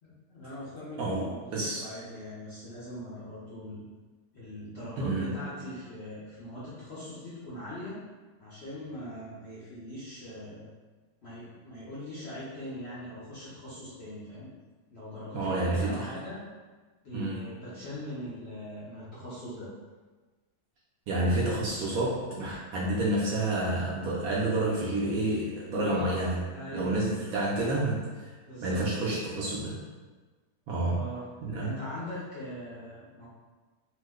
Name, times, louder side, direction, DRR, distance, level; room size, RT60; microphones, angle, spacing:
voice 1, 0.0-3.9 4.3-8.0 8.4-10.7 11.2-14.5 14.9-16.4 17.0-19.7 25.8-26.2 26.5-27.1 28.5-29.2 30.9-31.2 31.6-33.3, left 1 dB, 55° left, -10 dB, 0.7 m, -41 dB
voice 2, 1.0-1.8 5.0-5.4 15.3-16.1 17.1-17.5 21.1-26.4 26.7-28.3 28.6-29.8 30.7-31.0 31.4-31.7, right 2 dB, 70° right, -5 dB, 0.9 m, -29 dB
2.9 x 2.1 x 3.5 m, 1.3 s
omnidirectional pair, 1.8 m